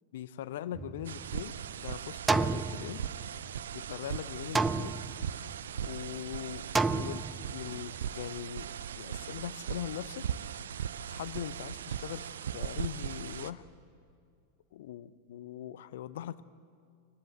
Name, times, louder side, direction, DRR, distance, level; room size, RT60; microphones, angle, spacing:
voice 1, 0.1-3.0 3.7-5.0 5.8-10.3 11.1-13.7 14.7-16.4, left 11 dB, 55° left, 16 dB, 0.7 m, -41 dB
sound 1, 0.7-1.6 2.3-3.5 4.5-5.5 6.7-7.7, right 3 dB, 10° right, 0.5 m, -31 dB
sound 2, 1.0-13.5, right 9 dB, 65° right, 0.6 m, -39 dB
23.5 x 19.0 x 8.2 m, 2.2 s
figure-of-eight pair, 90°, 0 cm